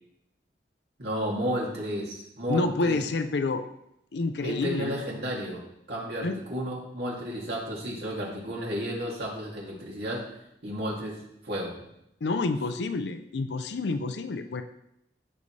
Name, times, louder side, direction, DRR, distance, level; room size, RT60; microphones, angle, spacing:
voice 1, 1.0-3.0 4.4-5.6 5.9-10.3 10.6-11.2 11.4-11.7, equal, 65° right, -3 dB, 2.6 m, -32 dB
voice 2, 2.5-3.7 4.1-5.0 6.2-6.4 12.2-14.6, left 3 dB, 75° left, 9 dB, 0.5 m, -28 dB
13.5 x 5.4 x 3.2 m, 0.80 s
head